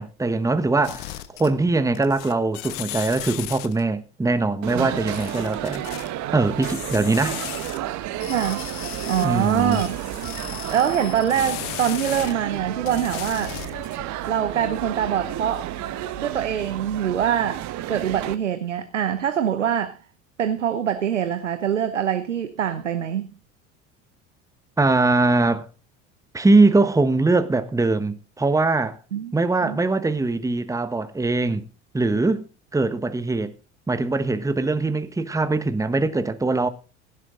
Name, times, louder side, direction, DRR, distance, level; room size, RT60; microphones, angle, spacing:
voice 1, 0.0-5.8 6.3-7.4 9.2-9.8 24.8-25.7 26.3-29.0 29.3-31.6 31.9-33.5 33.9-36.7, right 3 dB, 10° right, 1.2 m, -22 dB
sound 1, 0.8-1.7 2.0-3.8 5.1-6.1 6.6-7.8 8.1-12.3 12.8-14.0, left 15 dB, 60° left, 1.4 m, -36 dB
sound 2, 4.6-18.4, right 13 dB, 50° right, 1.3 m, -32 dB
voice 2, 8.3-8.6 9.1-10.0 10.7-13.6 14.3-15.7 16.2-17.6 17.9-20.0 20.4-23.3 29.1-29.8, right 9 dB, 85° right, 1.0 m, -24 dB
17.0 x 11.5 x 3.8 m
hypercardioid pair, 70°, 36 cm